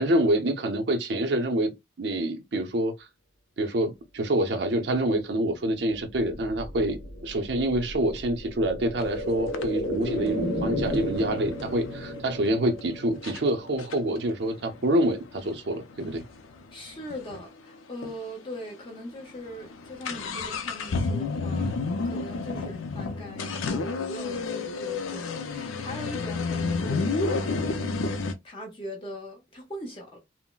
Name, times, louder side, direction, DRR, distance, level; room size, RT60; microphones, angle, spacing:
voice 1, 0.0-1.7 2.0-3.1 3.6-7.0 7.2-16.2 22.5-22.7, right 1 dB, 60° right, 0.5 m, -26 dB
sound 1, 5.8-15.6 15.9-16.0, equal, 55° left, 0.9 m, -34 dB
sound 2, 9.0-9.1 9.5-12.2 12.8-12.9 13.2-13.4 13.8-17.5 17.7-17.8 18.0-18.1 18.7-18.9 19.2-28.3, left 4 dB, 85° left, 0.4 m, -31 dB
voice 2, 16.7-21.7 22.0-27.6 28.4-30.2, equal, 25° left, 1.0 m, -41 dB
3.7 x 2.0 x 2.2 m
head